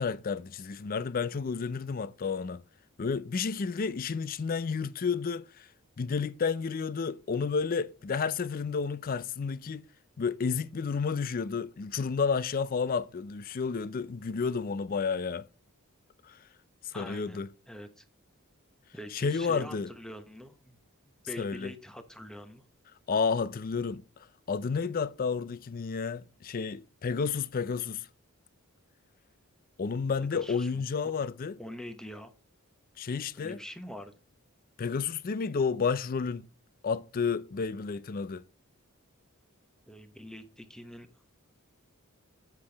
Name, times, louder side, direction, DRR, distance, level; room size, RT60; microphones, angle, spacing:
voice 1, 0.0-2.6 3.0-5.7 6.0-9.8 10.2-15.4 16.2-16.4 16.8-17.5 19.1-19.9 21.4-21.7 23.1-24.0 24.5-28.1 29.8-31.5 33.0-33.6 34.8-36.5 36.8-38.4, left 5 dB, 40° left, 0.4 m, -31 dB
voice 2, 16.9-17.4 17.7-18.0 18.9-20.8 21.0-22.6 30.3-31.1 31.6-32.3 33.3-34.1 39.9-41.1, equal, 5° left, 0.9 m, -44 dB
7.5 x 6.8 x 3.4 m
head